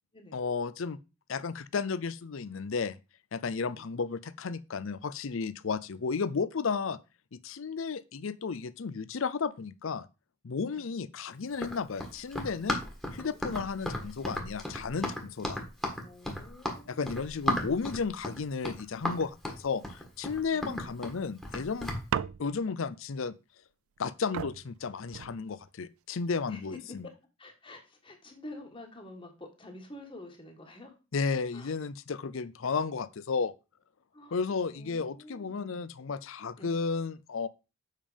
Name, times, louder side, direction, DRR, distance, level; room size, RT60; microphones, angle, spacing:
voice 1, 0.3-1.0 1.3-3.0 3.3-7.0 7.3-10.1 10.4-12.8 13.1-15.6 16.9-21.9 22.4-23.3 24.0-27.1 31.1-33.5 34.3-37.5, left 5 dB, 65° left, 0.5 m, -33 dB
Run, 11.5-22.0, left 1 dB, ahead, 1.6 m, -35 dB
voice 2, 13.0-13.4 16.0-17.2 20.5-20.9 26.5-27.1 27.4-30.9 31.5-31.7 34.1-34.4 34.7-35.9 36.6-36.8, left 2 dB, 25° left, 1.5 m, -48 dB
sound 1, 22.1-22.8 24.0-24.1 24.3-25.8 26.6-27.0, right 8 dB, 75° right, 0.3 m, -37 dB
7.4 x 5.4 x 5.0 m
head